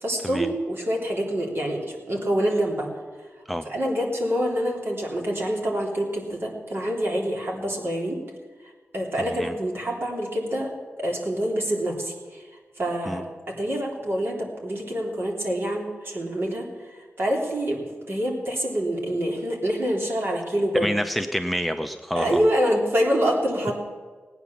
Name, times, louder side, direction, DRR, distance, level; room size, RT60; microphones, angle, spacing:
voice 1, 0.0-2.9 3.7-8.2 8.9-12.4 12.8-16.7 17.2-20.9 22.2-23.7, equal, 50° right, -1 dB, 3.3 m, -26 dB
voice 2, 20.7-22.4, equal, ahead, 8 dB, 0.6 m, -27 dB
17.5 x 9.3 x 7.1 m, 1.4 s
wide cardioid pair, 90°, 5 cm